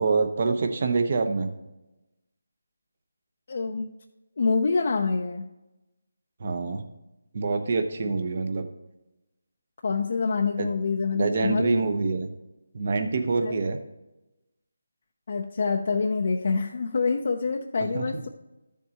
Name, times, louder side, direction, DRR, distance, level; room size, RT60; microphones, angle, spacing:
voice 1, 0.0-1.5 6.4-6.8 7.3-8.7 10.6-10.7 11.1-12.3 12.7-13.8 17.9-18.0, right 4 dB, 45° right, 7 dB, 1.0 m, -25 dB
voice 2, 3.5-3.9 4.4-5.5 9.8-11.8 13.4-13.5 15.3-18.3, left 4 dB, 50° left, 3 dB, 0.6 m, -26 dB
13.0 x 7.2 x 3.0 m, 0.99 s
figure-of-eight pair, 160°, 0 cm